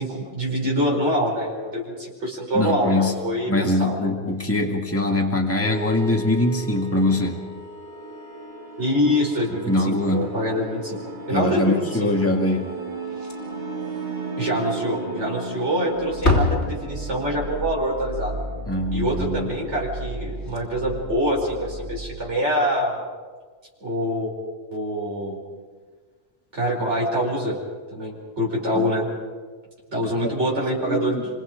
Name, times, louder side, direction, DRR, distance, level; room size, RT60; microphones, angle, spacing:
voice 1, 0.0-4.0 8.8-12.1 14.4-18.4 18.9-23.0 23.8-24.3 24.7-25.4 26.5-27.6 27.9-29.1 29.9-31.3, equal, 75° right, -4 dB, 5.4 m, -25 dB
voice 2, 2.5-3.2 3.5-7.4 9.7-10.3 11.3-12.8 18.7-19.5 28.7-28.9 30.2-30.6 30.9-31.2, left 1 dB, 10° left, 1 dB, 2.0 m, -23 dB
sound 1, 5.6-22.2, right 2 dB, 55° right, 2.6 m, -34 dB
Slam, 13.0-13.7 14.0-14.1 14.5-14.6 15.4-15.8 16.1-17.4 20.0-20.1 20.4-20.6 22.1-22.3, left 2 dB, 70° left, 3.7 m, -25 dB
27.5 x 24.5 x 5.2 m, 1.5 s
omnidirectional pair, 1.2 m